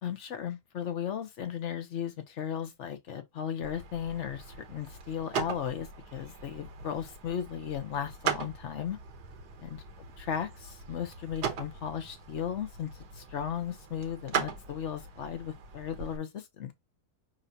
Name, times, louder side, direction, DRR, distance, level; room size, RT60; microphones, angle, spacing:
voice 1, 0.0-9.0 9.6-9.8 10.3-12.9 13.1-16.7, left 8 dB, 55° left, 0.9 m, -36 dB
sound 1, 3.6-16.2, right 6 dB, 75° right, 1.5 m, -39 dB
5.5 x 3.6 x 2.7 m
omnidirectional pair, 1.7 m